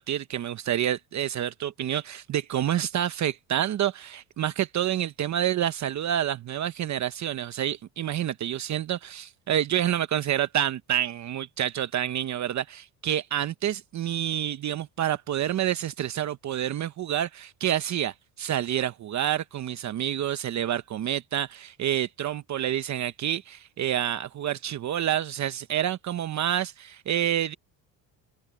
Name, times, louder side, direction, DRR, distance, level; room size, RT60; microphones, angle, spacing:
voice 1, 0.0-27.5, right 11 dB, 45° right, 0.9 m, -28 dB
open air
cardioid pair, 105°, 40 cm